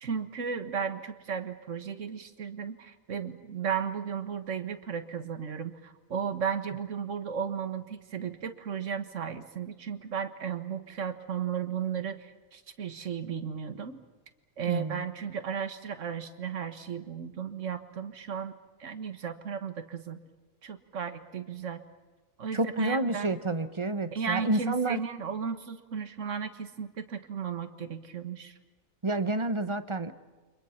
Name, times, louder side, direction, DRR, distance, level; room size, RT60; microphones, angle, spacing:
voice 1, 0.0-14.0 14.6-18.5 18.8-20.2 20.6-21.8 22.4-23.3 24.1-28.5, right 7 dB, 60° right, 9 dB, 1.7 m, -35 dB
voice 2, 14.7-15.0 22.5-25.0 29.0-30.1, right 2 dB, 25° right, 11 dB, 0.9 m, -29 dB
29.5 x 24.5 x 5.8 m, 1.2 s
omnidirectional pair, 1.5 m